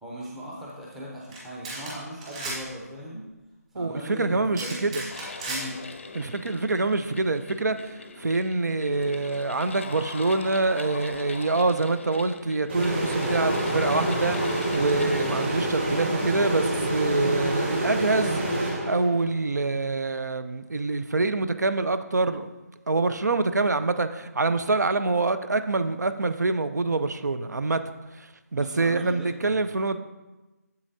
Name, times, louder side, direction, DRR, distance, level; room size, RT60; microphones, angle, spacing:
voice 1, 0.0-3.3 3.7-5.0 5.5-5.8 28.5-29.6, equal, ahead, -5 dB, 0.5 m, -38 dB
sound 1, 1.3-1.4 1.6-1.9 2.2-2.6 4.5-5.6, right 2 dB, 20° right, 1.5 m, -34 dB
voice 2, 3.8-5.0 6.2-18.4 18.8-22.5 22.9-27.8 28.2-30.0, right 3 dB, 80° right, 11 dB, 0.5 m, -26 dB
sound 2, 5.1-16.1, left 4 dB, 45° left, 0.5 m, -41 dB
sound 3, 12.7-19.4, right 1 dB, 40° right, 2.0 m, -27 dB
7.6 x 6.9 x 2.7 m, 1.1 s
figure-of-eight pair, 165°, 9 cm